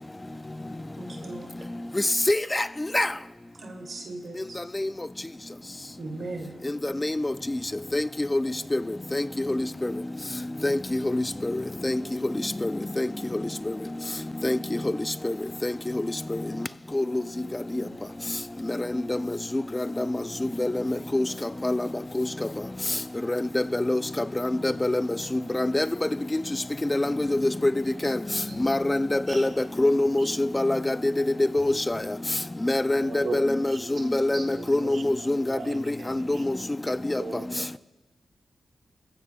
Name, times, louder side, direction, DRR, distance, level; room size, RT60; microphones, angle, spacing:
voice 1, 1.0-1.5 3.5-4.3 6.0-6.5 17.7-18.0 28.5-28.6 29.3-29.4 31.3-32.1 33.9-34.0 34.3-34.4 34.8-35.1 36.5-36.6, right 2 dB, 60° right, 2.6 m, -39 dB
voice 2, 2.3-2.6 2.9-3.1 4.8-4.9 7.0-7.3 7.9-8.0 8.3-8.4 8.7-8.8 9.1-9.2 9.5-9.6 10.6-10.8 11.1-11.2 11.8-12.0 12.6-12.7 13.0-13.1 14.4-14.6 15.2-15.3 15.6-15.7 16.9-17.0 20.0-20.1 20.6-20.7 21.1-21.2 21.6-21.8 22.2-22.3 23.5-24.0 24.6-25.0 25.5-25.9 26.9-27.7 28.0-28.2 28.6-29.5 29.8-30.9 31.5-31.9 32.6-33.8 34.1-35.6 36.3-36.6 36.9-37.2, left 1 dB, 20° left, 0.4 m, -24 dB
voice 3, 33.0-33.8 34.5-35.3 35.5-36.4 37.2-37.7, right 5 dB, 85° right, 1.0 m, -39 dB
23.5 x 15.0 x 2.3 m
cardioid pair, 75°, 0 cm